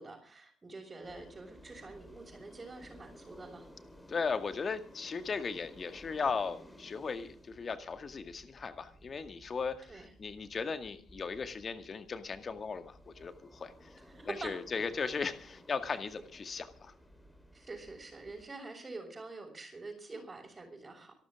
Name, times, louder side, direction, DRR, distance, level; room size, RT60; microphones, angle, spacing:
voice 1, 0.0-3.7 9.9-10.1 14.0-14.5 17.5-21.1, right 3 dB, 25° right, -3 dB, 5.8 m, -46 dB
sound 1, 1.0-18.4, equal, 10° left, 4.0 m, -57 dB
voice 2, 4.1-13.9 14.3-16.9, left 5 dB, 35° left, 9 dB, 2.0 m, -37 dB
26.0 x 12.5 x 3.7 m, 0.40 s
figure-of-eight pair, 45°, 0 cm